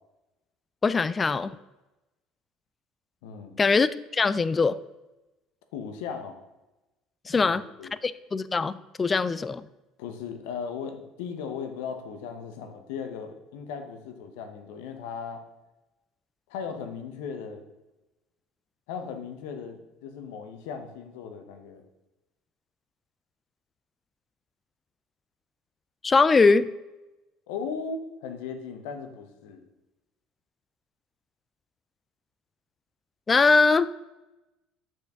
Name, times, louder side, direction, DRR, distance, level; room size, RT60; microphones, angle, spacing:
voice 1, 0.8-1.6 3.6-4.8 7.3-7.6 8.0-9.6 26.0-26.7 33.3-33.9, left 4 dB, 25° left, 16 dB, 0.3 m, -22 dB
voice 2, 3.2-3.6 5.7-6.4 7.3-7.9 10.0-15.4 16.5-17.6 18.9-21.8 27.5-29.6, left 6 dB, 80° left, 6 dB, 0.8 m, -37 dB
6.8 x 4.5 x 3.5 m, 1.0 s
hypercardioid pair, 80°, 0 cm